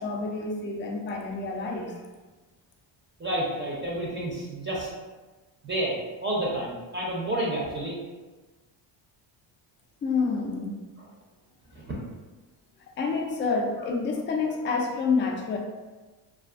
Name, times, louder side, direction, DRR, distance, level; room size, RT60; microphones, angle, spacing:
voice 1, 0.0-2.0 10.0-10.8 13.0-15.6, left 4 dB, 25° left, 0 dB, 0.4 m, -28 dB
voice 2, 3.2-4.9 5.6-8.0 11.7-11.9, right 1 dB, 25° right, -4 dB, 0.5 m, -30 dB
2.4 x 2.3 x 2.4 m, 1.3 s
cardioid pair, 85°, 50 cm